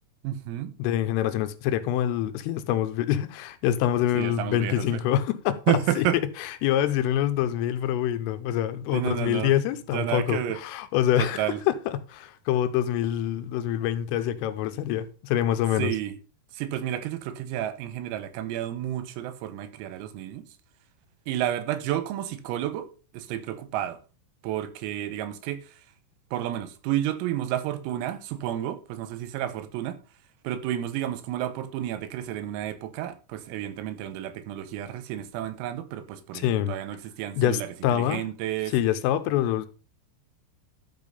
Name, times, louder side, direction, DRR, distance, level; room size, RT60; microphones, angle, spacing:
voice 1, 0.2-0.7 4.2-5.0 5.7-6.2 8.9-9.5 9.9-10.6 11.2-11.6 15.8-16.2 16.5-20.4 21.3-22.9 23.1-24.0 24.4-25.6 26.3-30.0 30.5-38.7, right 12 dB, 90° right, 3.8 m, -31 dB
voice 2, 0.8-6.1 6.4-15.9 36.3-36.8 37.4-38.2 38.7-39.7, left 11 dB, 80° left, 3.3 m, -26 dB
12.5 x 5.8 x 5.4 m
omnidirectional pair, 6.0 m